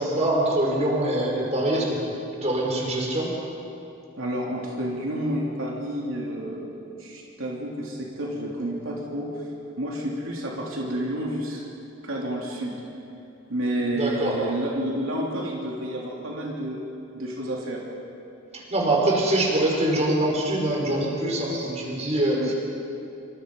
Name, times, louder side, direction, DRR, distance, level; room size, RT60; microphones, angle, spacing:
voice 1, 0.0-2.0 2.4-3.3 13.9-14.4 18.5-22.5, right 1 dB, 35° right, -2 dB, 5.3 m, -24 dB
voice 2, 4.2-9.3 9.8-11.6 12.0-12.8 13.5-16.8 17.1-17.8 22.3-22.5, right 1 dB, 75° right, -3 dB, 3.3 m, -30 dB
27.0 x 25.5 x 5.5 m, 2.8 s
head